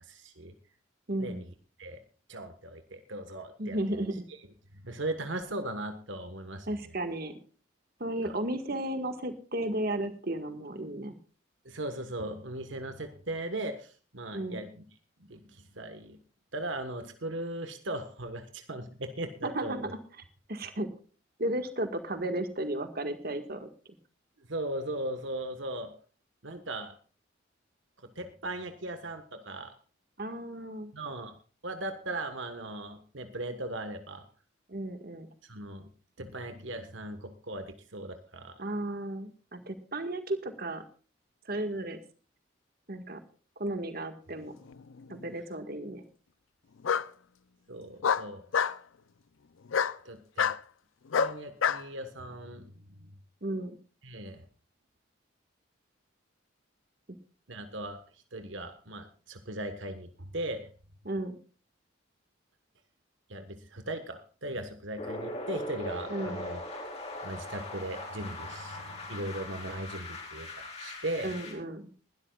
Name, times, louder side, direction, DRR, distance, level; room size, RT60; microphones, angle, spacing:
voice 1, 0.1-0.5 1.2-2.0 2.3-7.0 8.2-8.4 11.6-14.8 15.3-16.2 16.5-20.0 24.5-25.9 26.4-26.9 28.0-29.7 30.9-31.3 31.6-34.2 35.4-35.9 36.2-38.6 47.7-48.7 50.0-50.5 51.1-53.1 54.0-54.4 57.5-60.7 63.3-66.6 67.2-71.3, right 1 dB, 70° right, 8 dB, 1.4 m, -38 dB
voice 2, 1.1-1.4 3.6-4.2 6.7-7.3 8.0-11.2 14.3-14.6 19.4-19.8 20.5-20.9 21.4-23.7 30.2-30.9 34.7-35.3 38.6-40.8 41.5-42.0 42.9-43.2 43.6-44.5 45.1-46.0 53.4-53.8 61.1-61.4 66.1-66.4 71.2-71.9, right 1 dB, 50° right, 7 dB, 1.8 m, -34 dB
Bark, 44.7-45.3 46.8-47.1 48.0-48.8 49.7-50.0 50.4-50.6 51.1-51.8, left 7 dB, 85° left, 0.6 m, -27 dB
sound 1, 65.0-71.5, left 1 dB, 35° left, 4.6 m, -40 dB
21.0 x 12.5 x 2.4 m, 0.38 s
head